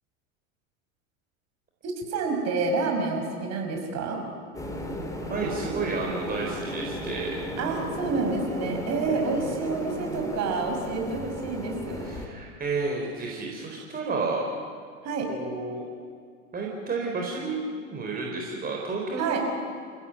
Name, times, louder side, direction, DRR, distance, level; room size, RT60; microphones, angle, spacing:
voice 1, 1.8-4.2 7.6-12.0 15.0-15.3 19.2-19.4, right 4 dB, 40° right, 2 dB, 6.1 m, -28 dB
sound 1, 4.5-12.3, equal, 10° left, 3.6 m, -35 dB
voice 2, 5.3-7.3 9.1-9.2 12.0-14.4 15.3-15.8 16.5-19.4, right 3 dB, 20° right, -1 dB, 4.2 m, -31 dB
29.0 x 16.0 x 9.2 m, 2.1 s
figure-of-eight pair, 85°, 41 cm